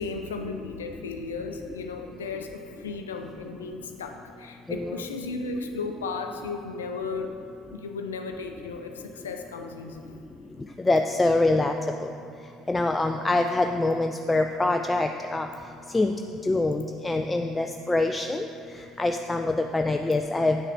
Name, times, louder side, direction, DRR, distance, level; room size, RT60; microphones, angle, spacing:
voice 1, 0.0-7.3 7.7-10.2, left 4 dB, 80° left, 5 dB, 0.5 m, -35 dB
voice 2, 10.9-11.7 12.0-12.1 12.7-15.5 15.9-16.1 16.5-18.5 19.0-20.6, left 2 dB, 15° left, 5 dB, 0.4 m, -24 dB
8.7 x 6.4 x 3.7 m, 2.5 s
figure-of-eight pair, 60°, 0 cm